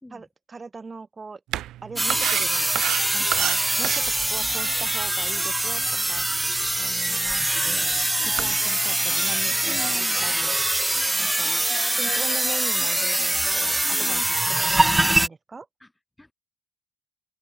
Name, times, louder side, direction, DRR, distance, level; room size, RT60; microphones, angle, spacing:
voice 1, 0.1-1.4 1.8-5.8 6.1-6.3 6.8-10.6 11.2-11.7 11.9-14.4 14.8-15.7, right 4 dB, 30° right, 2.6 m, -40 dB
sound 1, 1.5-10.0, right 14 dB, 85° right, 1.2 m, -34 dB
sound 2, 2.0-15.3, right 1 dB, 10° right, 0.8 m, -23 dB
voice 2, 9.7-10.2 10.9-12.2 13.8-14.3 15.8-15.9 16.2-16.3, left 1 dB, 10° left, 3.4 m, -45 dB
open air
cardioid pair, 90°, 0 cm